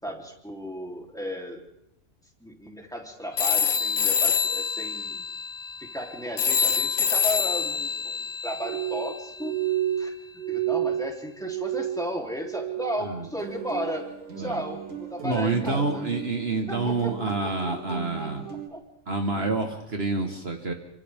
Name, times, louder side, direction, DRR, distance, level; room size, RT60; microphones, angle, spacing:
voice 1, 0.0-1.6 2.4-5.3 5.8-9.6 10.0-14.1 14.4-16.1 16.7-18.8, equal, 5° left, 0 dB, 3.4 m, -35 dB
sound 1, 3.4-9.5, left 6 dB, 90° left, 1.4 m, -26 dB
Glass, 8.6-13.2 13.5-14.1 14.5-15.1 15.6-15.9, right 11 dB, 35° right, 1.1 m, -31 dB
sound 2, 13.4-18.7, right 7 dB, 85° right, 2.8 m, -40 dB
voice 2, 15.2-18.4 19.1-20.7, right 3 dB, 50° right, 4 dB, 1.8 m, -28 dB
29.0 x 25.5 x 3.6 m, 0.75 s
omnidirectional pair, 1.4 m